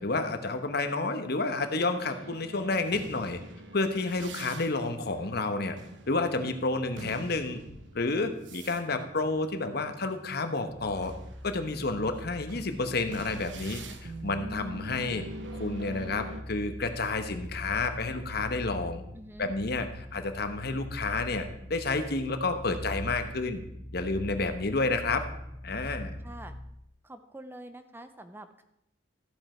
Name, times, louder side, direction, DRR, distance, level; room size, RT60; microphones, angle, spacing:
voice 1, 0.0-3.4 3.7-5.8 6.1-7.6 7.9-11.1 11.4-15.3 15.5-19.0 19.4-23.6 23.9-25.2 25.6-26.2, left 3 dB, 60° left, 8 dB, 1.1 m, -30 dB
sound 1, 2.0-10.5 10.9-16.4, right 1 dB, 85° right, 1.1 m, -45 dB
sound 2, 10.7-26.8, left 1 dB, 85° left, 1.1 m, -43 dB
voice 2, 19.1-19.5 26.2-26.5 27.0-28.6, right 1 dB, 10° right, 9 dB, 0.6 m, -46 dB
14.0 x 7.9 x 4.5 m, 0.80 s
head